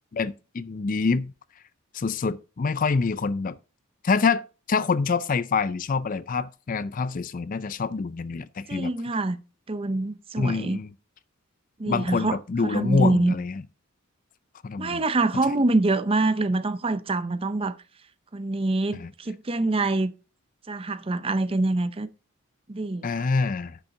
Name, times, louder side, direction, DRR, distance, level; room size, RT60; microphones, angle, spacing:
voice 1, 0.1-1.3 1.9-3.6 4.0-8.9 10.4-10.9 11.8-13.6 14.6-15.0 18.9-19.1 23.0-23.8, left 4 dB, 40° left, 0.4 m, -26 dB
voice 2, 8.7-9.4 9.7-10.8 11.8-13.3 14.8-17.7 18.3-20.1 20.7-22.1 22.7-23.3, right 2 dB, 25° right, 0.5 m, -25 dB
10.0 x 6.9 x 3.7 m
head